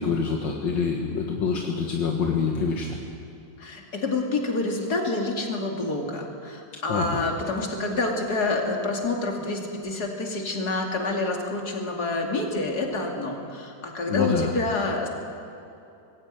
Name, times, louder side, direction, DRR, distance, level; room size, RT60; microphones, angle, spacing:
voice 1, 0.0-3.0 6.9-7.2 14.1-14.5, left 5 dB, 75° left, 0 dB, 2.2 m, -26 dB
voice 2, 3.6-15.1, left 2 dB, 60° left, 1 dB, 3.1 m, -28 dB
20.0 x 16.0 x 9.1 m, 2.7 s
omnidirectional pair, 2.0 m